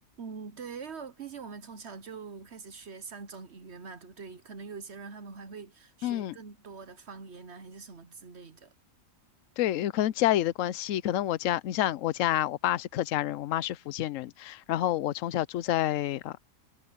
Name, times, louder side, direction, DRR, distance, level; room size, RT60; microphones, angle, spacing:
voice 1, 0.2-8.7, right 5 dB, 55° right, 1.2 m, -44 dB
voice 2, 6.0-6.4 9.6-16.4, left 13 dB, 75° left, 1.0 m, -28 dB
omnidirectional pair, 1.4 m